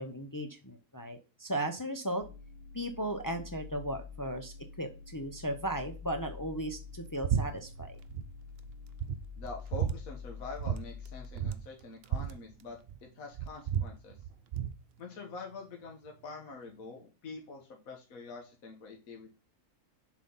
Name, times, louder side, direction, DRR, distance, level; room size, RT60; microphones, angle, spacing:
voice 1, 0.0-2.2 2.7-8.0, right 1 dB, 30° left, 5 dB, 0.3 m, -36 dB
sound 1, 2.2-11.3, left 6 dB, 90° left, 1.2 m, -47 dB
sound 2, 7.2-7.5 7.7-8.3 8.7-8.8 9.0-10.0 10.6-10.8 11.1-11.2 11.3-13.0 13.3-14.8, right 8 dB, 70° right, 0.5 m, -32 dB
voice 2, 9.4-14.2 15.0-19.3, left 4 dB, 60° left, 1 dB, 1.6 m, -45 dB
7.3 x 3.9 x 5.5 m, 0.31 s
omnidirectional pair, 1.7 m